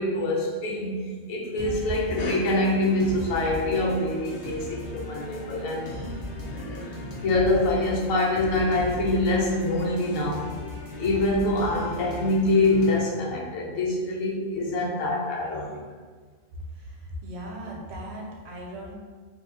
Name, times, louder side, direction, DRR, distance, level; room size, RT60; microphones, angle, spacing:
voice 1, 0.0-6.0 6.5-7.0 7.2-10.5 11.0-15.8, left 2 dB, 75° left, -3 dB, 1.0 m, -25 dB
sound 1, 1.6-13.0, left 1 dB, 50° left, 0.7 m, -37 dB
voice 2, 16.7-18.9, equal, 60° right, -1 dB, 0.7 m, -38 dB
3.5 x 2.3 x 2.8 m, 1.5 s
omnidirectional pair, 1.5 m